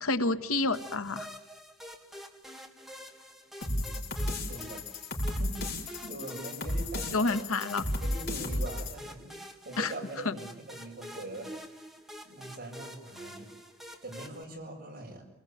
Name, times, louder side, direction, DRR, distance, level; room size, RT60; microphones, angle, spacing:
voice 1, 0.0-1.3 7.1-7.8 9.8-9.9 10.2-10.3, left 3 dB, 85° left, 10 dB, 1.5 m, -29 dB
sound 1, 0.7-14.4, equal, ahead, 2.1 m, -47 dB
sound 2, 3.6-8.9, left 1 dB, 55° left, 6.0 m, -34 dB
voice 2, 3.6-4.8 5.2-5.6 6.0-7.4 8.0-11.5 12.2-13.5 14.0-15.3, right 1 dB, 40° right, 1 dB, 7.4 m, -43 dB
28.0 x 20.5 x 9.4 m, 0.79 s
head